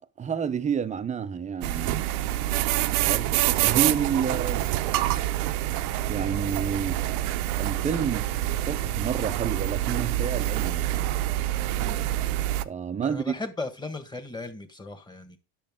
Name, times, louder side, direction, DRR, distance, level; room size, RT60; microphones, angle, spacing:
voice 1, 0.2-2.0 3.0-4.7 6.1-7.0 7.6-10.9 12.6-13.3, right 7 dB, 15° right, 0.6 m, -30 dB
sound 1, 1.6-12.6, right 14 dB, 70° right, 0.7 m, -26 dB
voice 2, 11.8-12.1 13.0-15.4, left 2 dB, 10° left, 1.5 m, -37 dB
10.0 x 6.6 x 3.7 m
supercardioid pair, 115°, 44 cm